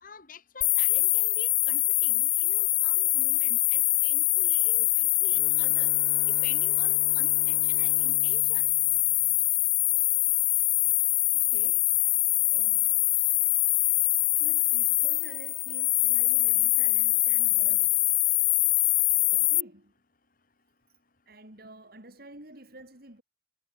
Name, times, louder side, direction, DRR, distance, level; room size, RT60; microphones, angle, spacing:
voice 1, 0.0-5.9 6.4-8.7, left 4 dB, 50° left, 2.3 m, -47 dB
sound 1, 0.6-19.6, left 22 dB, 90° left, 0.5 m, -24 dB
Bowed string instrument, 5.3-10.0, left 1 dB, 20° left, 5.0 m, -48 dB
voice 2, 11.3-12.0 12.4-13.1 14.4-18.1 19.3-19.9 21.3-23.2, right 1 dB, 55° right, 5.7 m, -50 dB
head